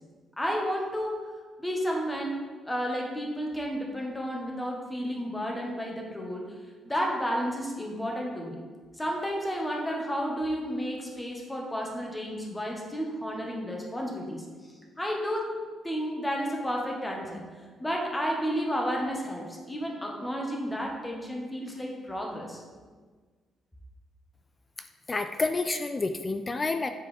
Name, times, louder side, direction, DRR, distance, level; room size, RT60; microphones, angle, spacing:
voice 1, 0.4-1.2 1.6-6.5 6.8-8.6 8.9-15.5 15.8-17.4 17.8-22.6, equal, 10° left, -1 dB, 1.3 m, -32 dB
voice 2, 25.1-26.9, left 3 dB, 30° left, 8 dB, 0.3 m, -29 dB
7.3 x 4.5 x 3.6 m, 1.5 s
cardioid pair, 90°, 0 cm